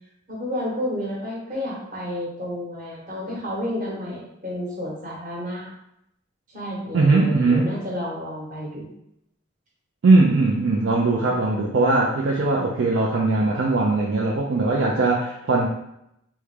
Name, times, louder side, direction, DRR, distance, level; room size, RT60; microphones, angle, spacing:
voice 1, 0.3-5.7 6.5-8.9 14.9-15.0, left 1 dB, 40° right, -5 dB, 1.1 m, -31 dB
voice 2, 6.9-7.7 10.0-15.7, right 3 dB, 65° right, -2 dB, 0.4 m, -20 dB
3.5 x 2.2 x 3.2 m, 0.79 s
head